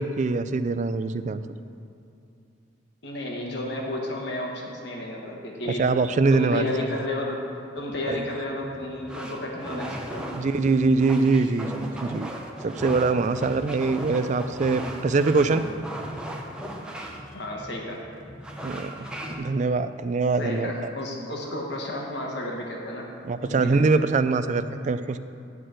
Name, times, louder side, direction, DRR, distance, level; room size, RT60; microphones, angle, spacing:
voice 1, 0.0-1.4 5.8-6.7 8.1-8.2 10.3-12.3 12.6-15.6 18.6-18.9 19.4-20.7 23.3-25.2, right 3 dB, 40° right, 11 dB, 0.3 m, -23 dB
voice 2, 3.0-5.9 6.3-7.4 7.7-10.2 17.0-18.0 20.4-23.1 23.4-23.8, left 1 dB, 60° left, -1 dB, 1.3 m, -32 dB
sound 1, 7.8-19.4, right 1 dB, 5° right, 0.7 m, -37 dB
11.0 x 4.3 x 7.7 m, 2.6 s
head